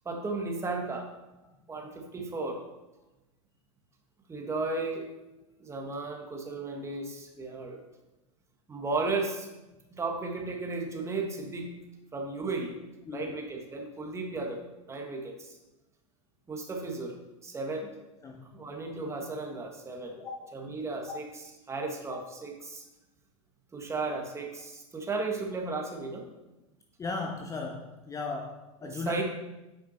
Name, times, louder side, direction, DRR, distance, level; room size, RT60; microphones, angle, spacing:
voice 1, 0.0-1.1 1.7-2.6 4.3-5.1 5.6-7.8 8.7-9.5 9.9-11.7 12.1-12.8 13.1-14.6 14.8-15.6 16.5-17.1 17.4-17.9 18.5-20.2 20.5-22.8 23.7-26.2 28.8-29.2, right 3 dB, 15° right, 2 dB, 1.6 m, -34 dB
voice 2, 13.1-13.4 18.2-18.4 20.2-20.6 21.1-21.2 22.1-22.2 27.0-29.2, left 3 dB, 20° left, 3 dB, 0.7 m, -37 dB
8.7 x 6.0 x 4.3 m, 1.0 s
hypercardioid pair, 115°, 17 cm